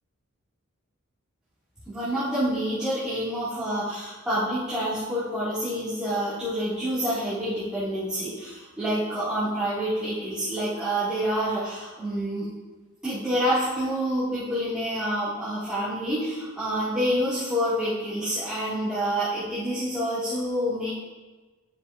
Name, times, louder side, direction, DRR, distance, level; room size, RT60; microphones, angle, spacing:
voice 1, 1.9-12.5 13.0-20.9, equal, 5° right, -14 dB, 2.5 m, -27 dB
10.5 x 6.3 x 2.7 m, 1.2 s
head